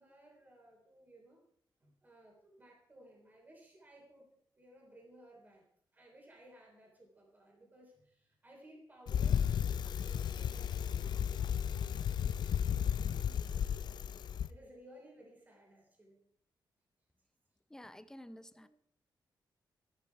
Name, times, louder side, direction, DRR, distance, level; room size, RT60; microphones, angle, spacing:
voice 1, 0.0-1.4 1.8-5.6 5.9-13.7 14.5-16.2 18.3-18.7, right 1 dB, 20° right, -1 dB, 3.4 m, -59 dB
Bicycle, 9.1-14.5, left 8 dB, 60° left, 0.5 m, -33 dB
voice 2, 17.7-18.7, left 1 dB, 5° left, 13 dB, 0.6 m, -51 dB
13.5 x 11.5 x 4.6 m, 0.65 s
wide cardioid pair, 175°, 8 cm